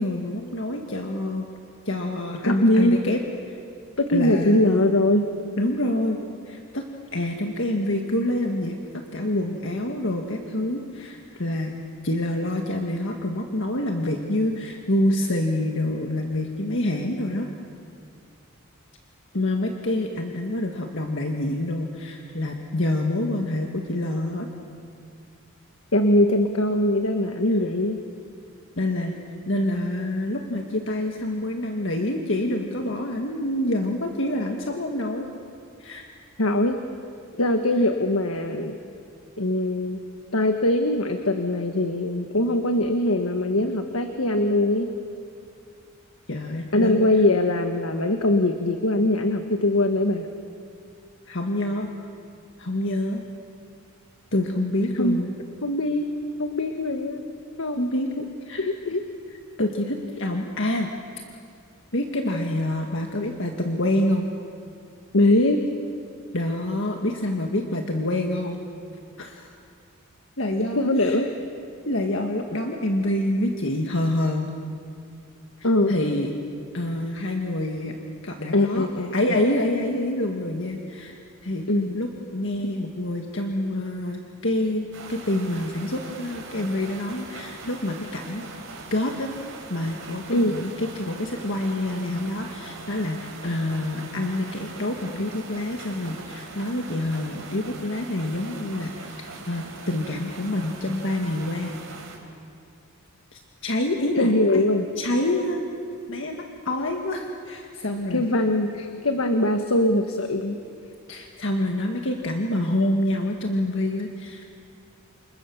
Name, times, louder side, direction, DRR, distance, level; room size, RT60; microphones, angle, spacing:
voice 1, 0.0-1.4 1.8-3.2 3.5-3.6 4.1-4.7 5.6-6.2 6.5-6.8 7.1-11.8 12.0-17.5 19.3-24.5 28.8-29.2 29.5-35.3 35.8-36.1 46.3-47.0 51.3-51.9 52.6-53.2 54.3-55.3 57.8-58.1 58.5-58.7 59.6-60.9 61.9-64.3 66.3-68.6 69.2-69.5 70.4-71.2 71.8-74.5 75.6-76.3 76.7-77.9 78.2-78.9 79.1-81.2 81.4-81.7 81.9-88.4 88.9-89.4 89.7-101.7 103.3-104.6 105.0-105.6 106.1-108.3 111.1-114.5, left 1 dB, 60° left, 2 dB, 1.8 m, -27 dB
voice 2, 2.4-3.0 4.0-5.3 25.9-28.0 36.4-36.8 37.4-38.8 39.4-40.0 40.3-44.9 46.7-50.3 55.0-55.2 55.6-56.1 56.4-57.2 57.6-58.2 58.6-59.0 65.1-65.6 70.8-71.3 75.6-75.9 78.5-79.1 81.7-82.0 90.3-90.5 104.2-104.9 108.1-110.6, left 1 dB, 85° left, 6 dB, 1.5 m, -22 dB
sound 1, 84.9-102.2, right 3 dB, 65° right, 4.9 m, -41 dB
29.0 x 27.5 x 7.2 m, 2.4 s
head